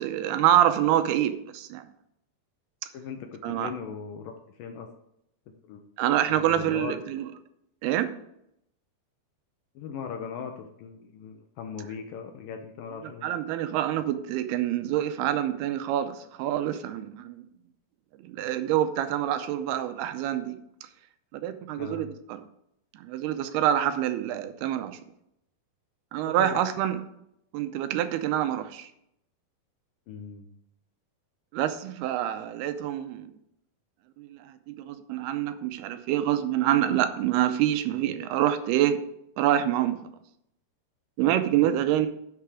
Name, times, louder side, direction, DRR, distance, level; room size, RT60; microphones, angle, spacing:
voice 1, 0.0-1.8 3.4-3.7 6.0-7.3 7.8-8.1 13.2-17.5 18.2-20.6 21.3-22.4 22.9-25.0 26.1-27.0 27.5-28.9 31.5-33.3 34.2-39.0 39.4-40.0 41.2-42.1, right 11 dB, 85° right, 10 dB, 2.7 m, -26 dB
voice 2, 2.9-4.9 5.6-5.8 6.3-6.9 9.8-13.3 21.8-22.1 26.2-26.6 30.1-30.5, left 6 dB, 75° left, 5 dB, 2.2 m, -39 dB
11.5 x 5.9 x 4.9 m, 0.77 s
omnidirectional pair, 4.6 m